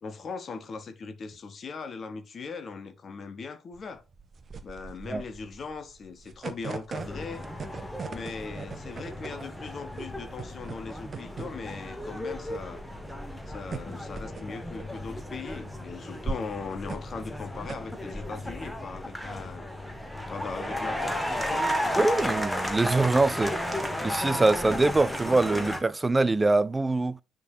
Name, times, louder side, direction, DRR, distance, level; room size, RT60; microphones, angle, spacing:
voice 1, 0.0-4.0 4.6-7.5 8.1-12.8 13.5-19.7 20.3-22.1, left 4 dB, 40° left, 0.9 m, -39 dB
sound 1, 3.7-18.5, right 5 dB, 40° right, 0.7 m, -41 dB
sound 2, 7.0-25.8, left 1 dB, 5° left, 1.4 m, -34 dB
voice 2, 21.9-23.6 24.0-27.2, right 2 dB, 20° right, 0.4 m, -24 dB
9.5 x 3.8 x 2.6 m
figure-of-eight pair, 45°, 0 cm